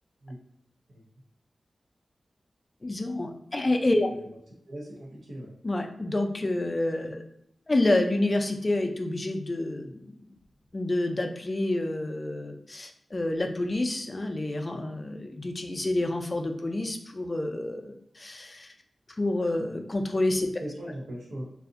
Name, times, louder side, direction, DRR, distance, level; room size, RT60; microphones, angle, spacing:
voice 1, 2.8-4.1 5.6-7.2 7.7-10.2 10.7-18.7 19.2-20.5, left 2 dB, 40° left, 5 dB, 0.4 m, -28 dB
voice 2, 3.9-4.3 4.7-5.5 20.6-21.4, right 1 dB, 85° right, -3 dB, 0.8 m, -39 dB
2.7 x 2.4 x 2.5 m, 0.71 s
cardioid pair, 45°, 0 cm